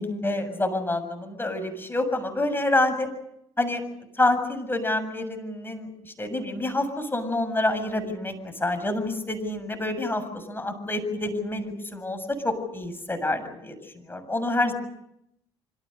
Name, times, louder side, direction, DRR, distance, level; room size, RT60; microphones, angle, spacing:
voice 1, 0.0-3.1 3.6-3.8 4.2-13.8 14.0-14.7, left 2 dB, 15° left, 8 dB, 7.3 m, -27 dB
27.5 x 26.0 x 6.7 m, 0.76 s
hypercardioid pair, 55°, 14 cm